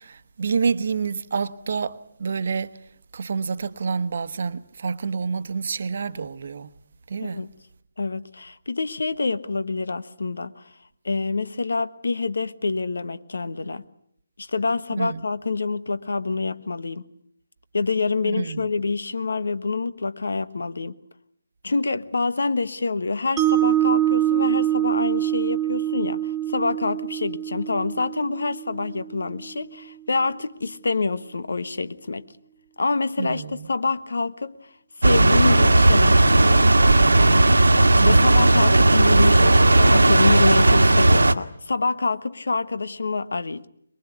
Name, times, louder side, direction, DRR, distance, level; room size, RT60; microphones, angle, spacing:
voice 1, 0.0-2.7 3.1-6.7 7.1-7.5 15.0-15.2 18.4-18.7 33.2-33.7 38.0-38.4, right 5 dB, 55° right, 1.1 m, -28 dB
voice 2, 8.0-10.6 11.0-13.8 14.4-17.1 17.7-21.0 21.6-32.2 32.8-34.6 35.0-36.7 37.9-43.7, left 3 dB, 70° left, 1.4 m, -26 dB
Mallet percussion, 23.4-29.5, right 12 dB, 15° right, 1.6 m, -24 dB
sound 1, 35.0-41.3, right 2 dB, 80° right, 1.5 m, -15 dB
23.5 x 22.5 x 8.3 m
figure-of-eight pair, 150°, 0 cm